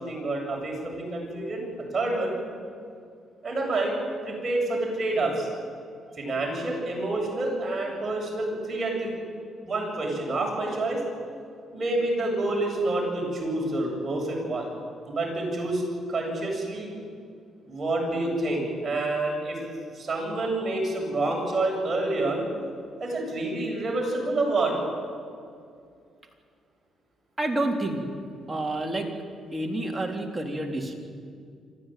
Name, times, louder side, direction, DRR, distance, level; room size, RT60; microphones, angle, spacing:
voice 1, 0.0-2.4 3.4-3.9 4.2-5.5 6.2-9.2 9.6-11.0 11.7-14.7 15.1-15.8 16.1-16.9 17.7-19.6 19.9-22.4 23.0-24.7, right 2 dB, 35° right, -1 dB, 7.9 m, -28 dB
voice 2, 27.4-28.0 28.5-29.1 29.5-30.9, right 1 dB, 15° right, 1 dB, 3.6 m, -28 dB
26.0 x 14.5 x 9.3 m, 2.3 s
cardioid pair, 90°, 0 cm